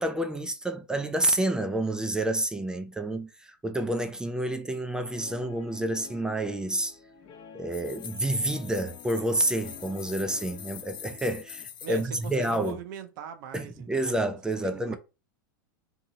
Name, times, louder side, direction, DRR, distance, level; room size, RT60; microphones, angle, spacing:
voice 1, 0.0-7.0 7.5-12.8 13.5-15.0, right 1 dB, 5° right, 0.4 m, -29 dB
Guitar, 5.1-11.6, left 6 dB, 35° left, 0.8 m, -49 dB
sound 1, 7.7-12.7, left 9 dB, 85° left, 0.5 m, -44 dB
voice 2, 11.8-14.2 14.6-15.0, right 7 dB, 60° right, 0.6 m, -40 dB
2.7 x 2.7 x 2.7 m
hypercardioid pair, 105°, 11 cm